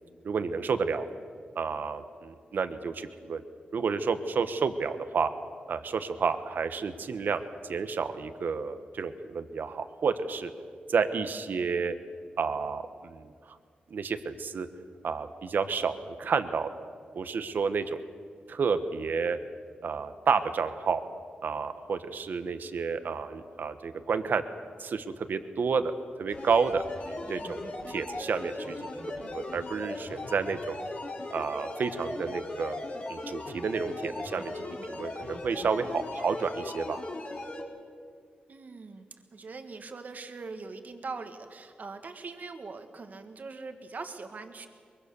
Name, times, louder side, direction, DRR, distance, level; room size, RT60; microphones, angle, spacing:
voice 1, 0.2-1.1 1.5-3.4 3.7-5.3 5.7-7.4 7.7-10.5 10.9-11.9 12.4-13.5 13.9-14.7 15.0-16.9 17.1-18.0 18.5-19.4 19.8-21.0 21.4-24.4 24.8-25.9 26.2-30.8 31.3-32.8 33.1-37.0, right 5 dB, 70° right, 10 dB, 1.2 m, -30 dB
sound 1, 26.3-37.6, left 2 dB, 55° left, 3.7 m, -38 dB
voice 2, 38.5-39.0 39.3-44.7, right 4 dB, 55° right, 6 dB, 1.6 m, -41 dB
23.0 x 22.5 x 7.0 m, 2.1 s
cardioid pair, 85°, 3 cm